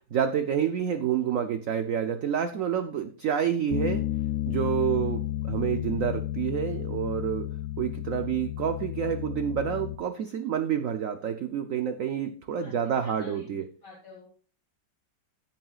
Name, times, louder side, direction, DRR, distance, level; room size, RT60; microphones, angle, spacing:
voice 1, 0.1-4.0 4.5-7.5 7.8-13.6, right 8 dB, 60° right, 8 dB, 0.9 m, -28 dB
Bass guitar, 3.7-10.0, left 13 dB, 80° left, 0.7 m, -32 dB
voice 2, 12.6-14.3, left 3 dB, 45° left, -3 dB, 2.7 m, -50 dB
16.5 x 8.7 x 2.4 m, 0.43 s
omnidirectional pair, 2.1 m